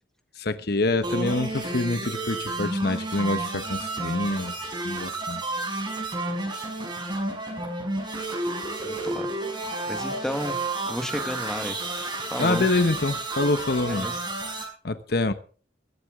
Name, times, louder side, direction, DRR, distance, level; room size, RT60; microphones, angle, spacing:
voice 1, 0.4-4.5 4.8-5.4 12.4-14.1 14.8-15.3, left 2 dB, 65° left, 1.2 m, -26 dB
sound 1, 1.0-14.6, right 2 dB, 25° right, 6.2 m, -31 dB
voice 2, 8.8-9.3 9.9-10.6 10.9-11.8 12.3-12.7 13.9-14.2, equal, 5° left, 1.5 m, -32 dB
22.0 x 9.9 x 3.7 m
head